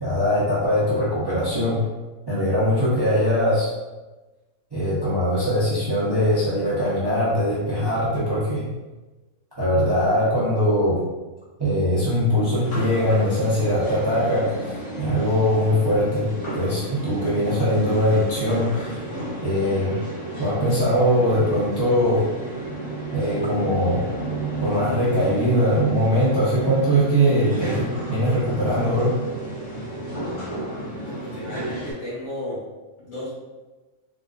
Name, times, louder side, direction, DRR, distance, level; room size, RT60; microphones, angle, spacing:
voice 1, 0.0-1.8 2.3-3.7 4.7-8.6 9.6-11.0 11.6-14.7 15.0-16.3 16.5-19.0 19.4-19.9 20.4-22.3 23.1-24.0 24.6-29.1, equal, 25° right, -9 dB, 0.6 m, -21 dB
sound 1, 12.6-31.9, right 1 dB, 35° left, 0.8 m, -32 dB
voice 2, 30.9-32.6 33.0-33.3, left 1 dB, 65° left, -9 dB, 2.1 m, -34 dB
4.0 x 2.4 x 2.4 m, 1.2 s
omnidirectional pair, 1.5 m